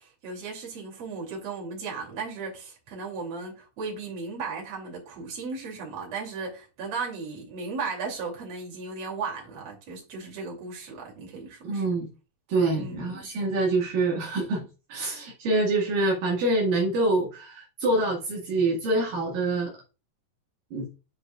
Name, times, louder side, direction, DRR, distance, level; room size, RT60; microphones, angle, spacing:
voice 1, 0.0-11.9 12.8-13.3, right 4 dB, 45° right, 3.6 m, -36 dB
voice 2, 11.7-12.1 12.5-14.6 14.9-19.7 20.7-20.9, right 2 dB, 65° right, 3.4 m, -25 dB
11.5 x 4.9 x 2.4 m
omnidirectional pair, 4.4 m